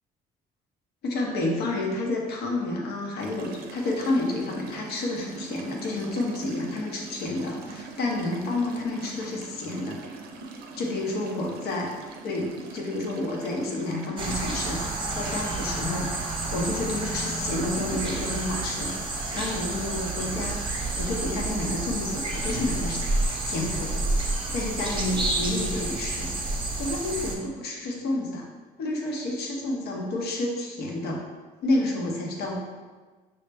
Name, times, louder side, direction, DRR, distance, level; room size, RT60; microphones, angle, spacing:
voice 1, 1.0-10.0 10.8-11.9 12.2-16.1 16.5-20.6 21.0-23.0 23.4-24.1 24.5-26.3 26.8-28.5 28.8-31.2 31.6-32.6, left 2 dB, 70° left, 0 dB, 0.8 m, -30 dB
sound 1, 3.2-14.1, right 4 dB, 70° right, 0.5 m, -43 dB
sound 2, 14.2-27.4, right 2 dB, 30° right, 0.7 m, -29 dB
5.4 x 2.1 x 3.3 m, 1.3 s
cardioid pair, 110°, 17 cm